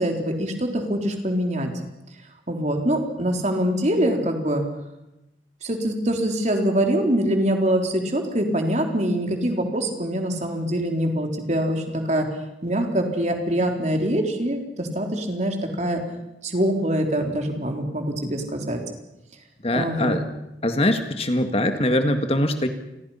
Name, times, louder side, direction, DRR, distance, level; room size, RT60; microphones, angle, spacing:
voice 1, 0.0-1.7 2.5-4.6 5.6-12.3 12.6-16.0 16.4-18.8 19.7-20.2, right 1 dB, 40° right, 3 dB, 3.7 m, -24 dB
voice 2, 19.6-20.2 20.6-22.7, left 1 dB, 35° left, 7 dB, 1.9 m, -22 dB
29.0 x 22.5 x 5.7 m, 0.92 s
head